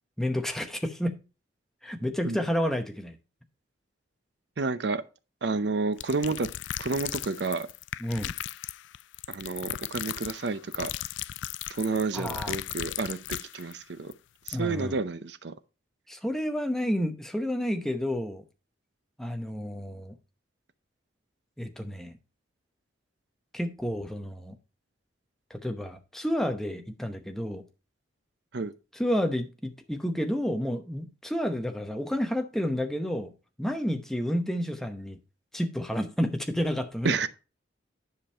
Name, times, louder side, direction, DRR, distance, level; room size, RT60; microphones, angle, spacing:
voice 1, 0.2-1.2 1.8-3.2 8.0-8.3 12.1-12.5 14.5-14.9 16.1-18.4 19.2-20.1 21.6-22.1 23.5-24.5 25.5-27.6 28.9-33.3 33.6-35.2 35.5-37.2, equal, ahead, 0.8 m, -30 dB
voice 2, 4.6-5.0 5.4-6.5 6.8-7.7 9.3-10.9 11.7-14.1 14.5-15.5 28.5-28.7 37.0-37.3, right 3 dB, 65° right, 0.6 m, -30 dB
sound 1, 6.0-13.8 14.1-14.2 14.5-14.6, left 13 dB, 75° left, 0.3 m, -37 dB
10.0 x 5.3 x 4.3 m
head